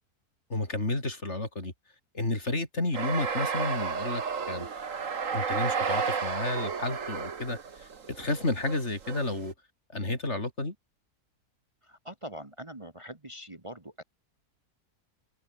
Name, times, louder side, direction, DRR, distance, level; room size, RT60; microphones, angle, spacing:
voice 1, 0.5-1.7 2.1-4.7 5.3-9.5 9.9-10.7, left 2 dB, 45° left, 4.8 m, -31 dB
sound 1, 2.9-9.5, right 6 dB, 60° right, 2.0 m, -32 dB
voice 2, 11.8-14.0, equal, 20° right, 2.0 m, -43 dB
omnidirectional pair, 1.6 m